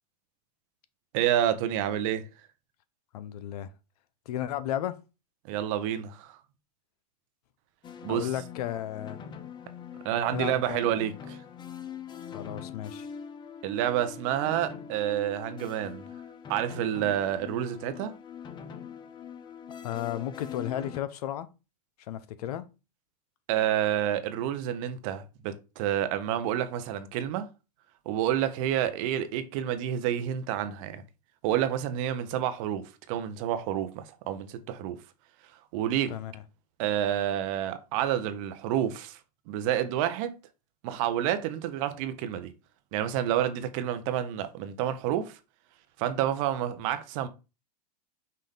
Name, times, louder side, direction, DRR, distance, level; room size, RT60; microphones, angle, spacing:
voice 1, 1.1-2.3 5.4-6.4 8.0-8.3 10.0-11.4 13.6-16.1 16.5-18.1 23.5-27.5 28.1-31.0 31.4-35.0 35.5-36.1 36.8-39.2 39.5-40.3 40.8-42.5 42.9-45.4 46.0-47.3, right 11 dB, 50° right, 0.7 m, -29 dB
voice 2, 3.1-3.7 4.3-5.0 8.1-9.2 10.3-11.0 12.3-13.1 19.8-21.5 22.0-22.7 36.1-36.3, left 11 dB, 65° left, 0.6 m, -34 dB
sound 1, 7.8-21.0, left 7 dB, 20° left, 0.5 m, -43 dB
5.7 x 2.5 x 3.6 m
hypercardioid pair, 120°, 21 cm